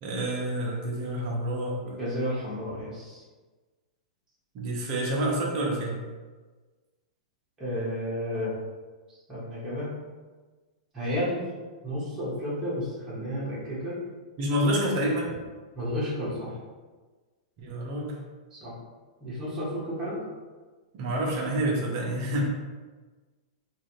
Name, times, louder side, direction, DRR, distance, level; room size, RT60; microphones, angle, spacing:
voice 1, 0.0-2.0 4.5-6.0 14.4-15.3 17.6-18.2 20.9-22.4, right 1 dB, 40° right, -2 dB, 0.7 m, -28 dB
voice 2, 1.8-3.2 7.6-8.5 9.3-9.9 10.9-11.4 11.8-14.0 15.7-16.6 18.5-18.7 19.2-20.2, equal, 15° right, -9 dB, 1.2 m, -32 dB
2.8 x 2.4 x 2.9 m, 1.3 s
hypercardioid pair, 130°, 4 cm